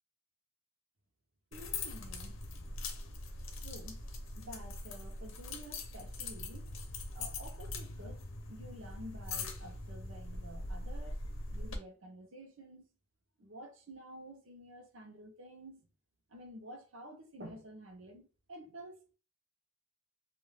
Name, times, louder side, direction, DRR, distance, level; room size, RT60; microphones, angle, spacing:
sound 1, 1.5-11.8, left 2 dB, 75° left, 0.6 m, -42 dB
voice 1, 1.5-2.4 3.6-4.0 4.4-6.7 7.1-8.2 8.5-11.1 11.5-12.8 13.4-15.8 16.3-19.1, equal, 70° right, 0.9 m, -50 dB
2.5 x 2.4 x 3.3 m
head